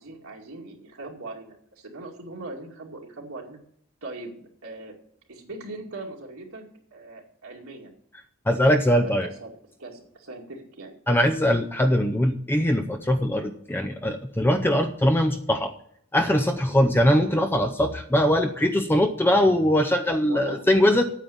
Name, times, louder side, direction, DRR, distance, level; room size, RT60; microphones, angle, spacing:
voice 1, 0.0-3.6 4.0-4.9 5.3-6.6 6.9-7.9 8.5-9.5 9.8-10.9 11.2-11.3 16.7-16.8 20.2-20.6, right 2 dB, 70° right, 0 dB, 2.3 m, -40 dB
voice 2, 8.5-9.3 11.1-15.7 16.1-21.0, equal, 10° left, 5 dB, 0.6 m, -21 dB
9.1 x 7.6 x 8.5 m, 0.68 s
head